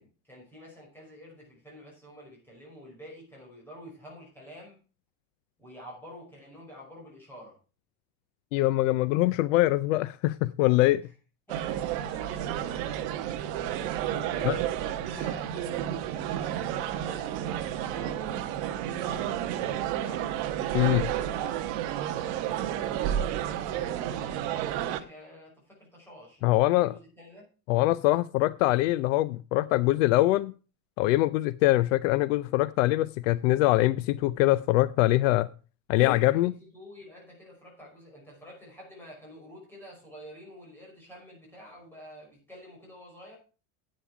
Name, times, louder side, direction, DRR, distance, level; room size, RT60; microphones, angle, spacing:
voice 1, 0.0-4.8 5.6-7.6 11.0-11.1 11.5-13.5 14.3-20.3 21.3-27.5 36.3-43.4, equal, 5° left, 5.3 m, -49 dB
voice 2, 8.5-11.0 14.4-14.6 20.7-21.1 26.4-26.9 27.7-30.5 31.0-35.5 35.9-36.5, left 17 dB, 65° left, 0.6 m, -23 dB
sound 1, 11.5-25.0, right 11 dB, 45° right, 1.0 m, -31 dB
10.5 x 8.9 x 4.8 m
cardioid pair, 180°, 42 cm